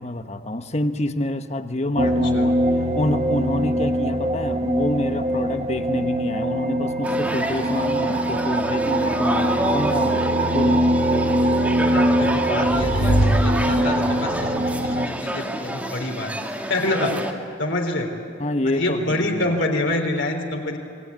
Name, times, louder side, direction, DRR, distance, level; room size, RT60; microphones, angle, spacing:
voice 1, 0.0-2.6 3.0-10.9 18.4-19.6, left 1 dB, 30° left, 8 dB, 1.2 m, -27 dB
sound 1, 2.0-15.1, right 1 dB, 30° right, 1.3 m, -22 dB
sound 2, 7.0-17.3, right 1 dB, 5° right, 1.8 m, -29 dB
voice 2, 11.9-13.1 13.4-14.5 14.8-16.3 16.7-17.1 17.6-18.1 18.7-20.8, left 2 dB, 55° left, 3 dB, 3.7 m, -26 dB
sound 3, 12.1-14.4, right 1 dB, 80° left, 2.3 m, -23 dB
26.5 x 21.5 x 9.6 m, 2.4 s
head